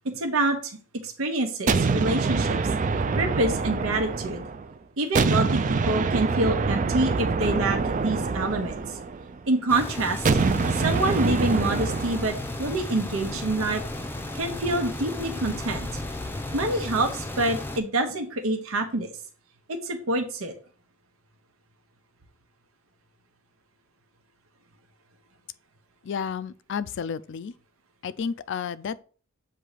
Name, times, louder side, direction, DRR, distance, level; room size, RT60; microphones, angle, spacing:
voice 1, 0.0-0.8 1.0-2.6 3.2-4.4 5.0-8.7 9.5-10.2 10.7-13.8 14.3-16.0 16.5-19.1 19.7-20.5, right 2 dB, 85° right, 0.9 m, -26 dB
sound 1, 1.7-4.7 5.1-9.4 10.2-12.4, right 4 dB, 40° right, 0.4 m, -25 dB
sound 2, 9.7-17.8, left 1 dB, 10° left, 0.6 m, -34 dB
voice 2, 26.0-27.5 28.0-29.0, left 6 dB, 60° left, 0.4 m, -31 dB
7.6 x 2.8 x 4.9 m
head